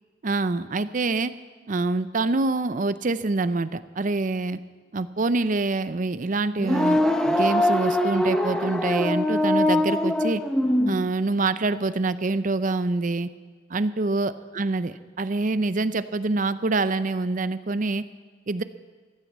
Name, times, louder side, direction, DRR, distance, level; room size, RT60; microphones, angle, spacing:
voice 1, 0.2-1.3 1.7-4.6 4.9-10.4 10.9-13.3 13.7-18.0 18.5-18.6, right 3 dB, 40° right, 14 dB, 0.5 m, -26 dB
sound 1, 6.6-11.0, left 1 dB, 5° left, 0.8 m, -22 dB
15.5 x 11.5 x 7.4 m, 1.4 s
head